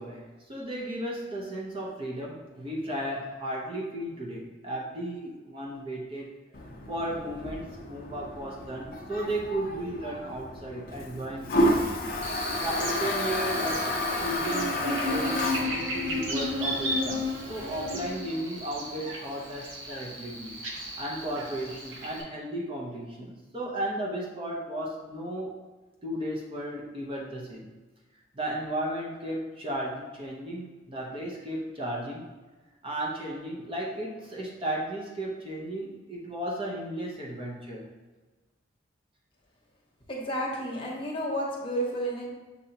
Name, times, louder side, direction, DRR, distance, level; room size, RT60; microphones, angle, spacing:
voice 1, 0.0-6.3 6.9-11.7 12.6-25.6 26.0-27.7 28.3-32.2 32.8-37.8, right 1 dB, 25° right, -3 dB, 0.7 m, -35 dB
Toilet flush, 6.5-18.1, left 1 dB, 45° left, 0.5 m, -32 dB
Buzz, 12.2-22.2, left 1 dB, 75° right, 0.8 m, -34 dB
voice 2, 40.1-42.3, right 1 dB, 25° left, -3 dB, 0.9 m, -31 dB
6.5 x 2.7 x 2.8 m, 1.2 s
head